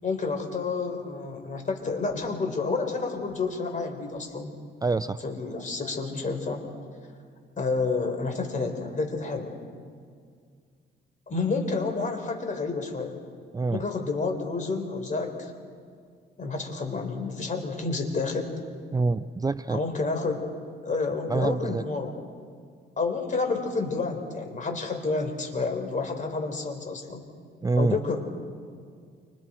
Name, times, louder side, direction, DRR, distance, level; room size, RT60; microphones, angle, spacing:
voice 1, 0.0-4.5 5.2-6.6 7.6-9.6 11.3-13.2 13.7-15.5 16.4-18.5 19.7-20.5 20.8-22.2 23.0-27.2 27.8-28.2, left 4 dB, 40° left, 4 dB, 4.2 m, -29 dB
voice 2, 4.8-5.2 13.5-13.8 18.9-19.8 21.3-21.8 27.6-28.0, right 3 dB, 20° right, 13 dB, 0.5 m, -26 dB
29.0 x 26.0 x 4.5 m, 2.1 s
cardioid pair, 90°, 20 cm